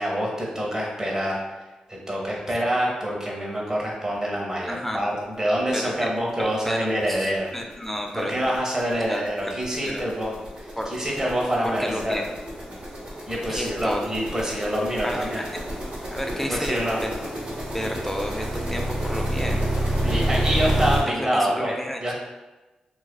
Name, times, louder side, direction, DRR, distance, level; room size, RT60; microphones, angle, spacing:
voice 1, 0.0-1.4 1.9-7.5 8.1-12.2 13.3-15.4 16.5-17.0 20.0-22.2, equal, 20° right, -2 dB, 0.8 m, -26 dB
voice 2, 4.7-5.0 5.7-6.1 6.4-8.3 9.1-9.2 9.8-10.0 10.8-10.9 11.6-12.2 13.5-14.0 15.0-15.4 16.1-17.1 17.7-19.6 20.0-20.2 21.2-22.0, equal, 10° left, 2 dB, 0.4 m, -31 dB
sound 1, 5.6-5.7 6.0-6.2 6.4-21.0, right 1 dB, 80° right, 0.9 m, -29 dB
2.3 x 2.3 x 2.3 m, 1.1 s
cardioid pair, 50°, 3 cm